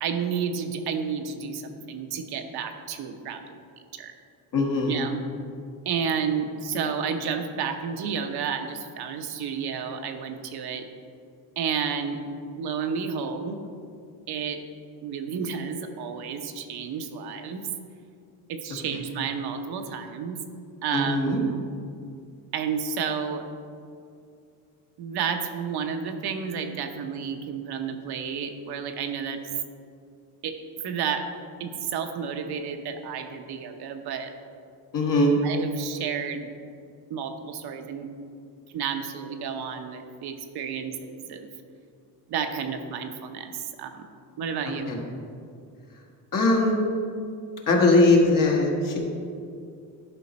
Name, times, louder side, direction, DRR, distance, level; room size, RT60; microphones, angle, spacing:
voice 1, 0.0-3.6 3.9-4.1 4.9-5.2 5.9-10.9 11.6-12.2 12.5-13.6 14.3-14.6 15.0-17.7 18.5-20.4 20.8-21.6 22.5-23.4 25.0-29.4 30.4-30.5 30.8-31.2 31.6-34.3 35.4-36.5 37.1-38.1 38.7-41.5 42.3-44.0 44.4-44.9, right 6 dB, 70° right, 5 dB, 0.9 m, -31 dB
voice 2, 4.5-4.9 20.9-21.4 34.9-35.4 44.9-45.0 46.3-46.7 47.7-49.0, left 2 dB, 55° left, 0 dB, 1.6 m, -20 dB
11.0 x 5.1 x 4.3 m, 2.4 s
cardioid pair, 125°, 40 cm